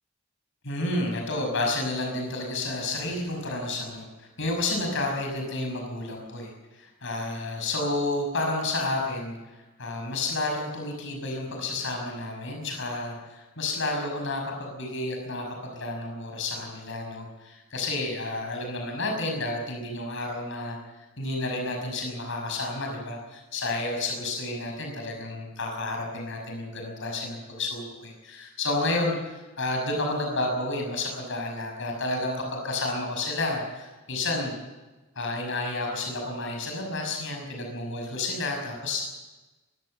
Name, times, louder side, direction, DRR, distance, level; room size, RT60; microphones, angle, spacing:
voice 1, 0.6-9.4 9.8-34.5 35.2-39.1, left 2 dB, 60° left, 2 dB, 6.0 m, -31 dB
24.0 x 15.0 x 7.9 m, 1.2 s
head